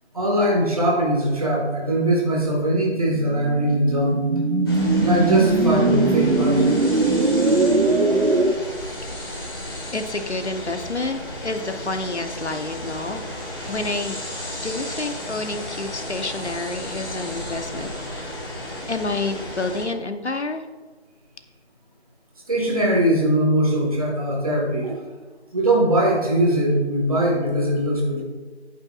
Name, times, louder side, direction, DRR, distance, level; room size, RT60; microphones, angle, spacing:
voice 1, 0.1-4.3 4.9-6.7 22.5-25.0 25.5-28.2, right 1 dB, 35° right, -1 dB, 1.8 m, -21 dB
sound 1, 3.1-8.5, right 2 dB, 80° right, 0.9 m, -20 dB
sound 2, 4.7-19.8, left 1 dB, 20° left, 1.9 m, -33 dB
voice 2, 9.9-13.2 13.7-14.2 14.6-18.4 18.9-20.6, left 2 dB, 90° left, 7 dB, 1.1 m, -29 dB
11.0 x 8.8 x 2.5 m, 1.4 s
figure-of-eight pair, 170°, 33 cm